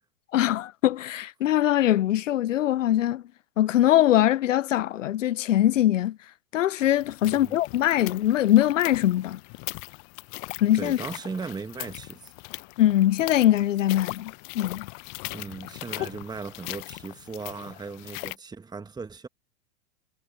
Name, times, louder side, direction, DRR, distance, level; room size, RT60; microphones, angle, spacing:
voice 1, 0.3-3.2 3.6-6.2 6.5-9.4 10.6-11.0 12.8-14.9, left 13 dB, 65° left, 0.7 m, -22 dB
sound 1, 6.8-18.4, left 38 dB, 40° left, 1.0 m, -40 dB
voice 2, 7.2-7.5 10.7-12.3 15.3-19.3, right 4 dB, 10° right, 1.8 m, -37 dB
figure-of-eight pair, 95°, 41 cm